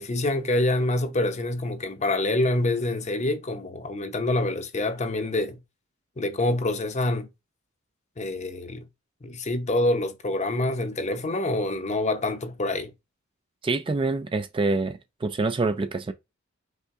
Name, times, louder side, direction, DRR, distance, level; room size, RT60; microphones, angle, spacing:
voice 1, 0.0-5.6 6.2-7.3 8.2-8.9 9.2-12.9, left 2 dB, 35° left, 0.7 m, -26 dB
voice 2, 13.6-16.1, right 3 dB, 25° right, 0.4 m, -26 dB
5.6 x 2.2 x 3.5 m
head